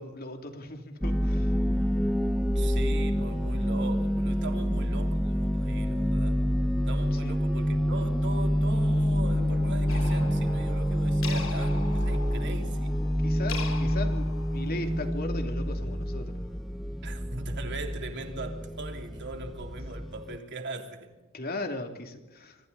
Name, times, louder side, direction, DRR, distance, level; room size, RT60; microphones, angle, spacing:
voice 1, 0.0-1.6 7.1-7.3 13.2-16.5 21.3-22.6, left 2 dB, 45° left, 2.8 m, -38 dB
sound 1, 1.0-20.4, equal, ahead, 0.7 m, -27 dB
voice 2, 2.5-6.4 6.9-12.9 17.0-21.1, right 2 dB, 55° right, 3.1 m, -40 dB
sound 2, 9.9-15.1, left 4 dB, 70° left, 3.0 m, -41 dB
27.0 x 24.5 x 4.1 m
head